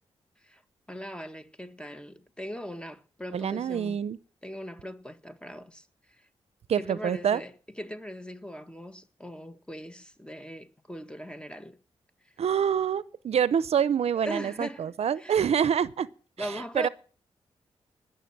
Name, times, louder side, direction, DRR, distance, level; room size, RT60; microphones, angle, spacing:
voice 1, 0.9-4.0 4.4-6.2 6.7-11.8 14.1-15.5 16.4-16.9, equal, 10° left, 1.5 m, -40 dB
voice 2, 3.3-4.2 6.7-7.4 12.4-16.1 16.4-16.9, right 8 dB, 70° right, 0.6 m, -26 dB
19.5 x 6.9 x 6.0 m
cardioid pair, 60°, 11 cm